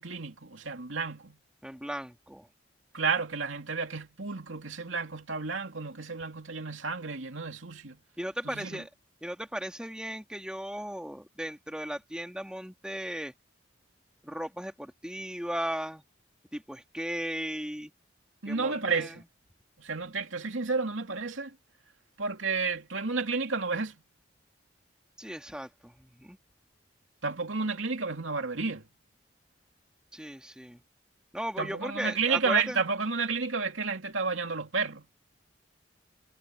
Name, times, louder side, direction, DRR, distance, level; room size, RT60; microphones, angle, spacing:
voice 1, 0.0-1.4 2.9-8.0 8.4-8.8 18.4-19.2 19.8-21.5 22.2-23.9 27.2-28.9 31.6-35.1, right 4 dB, 90° right, 2.8 m, -31 dB
voice 2, 1.6-2.5 8.2-8.9 9.2-13.3 14.2-16.0 16.5-17.9 18.5-19.2 25.2-26.4 30.1-30.8 31.3-32.8, equal, 5° right, 2.8 m, -36 dB
head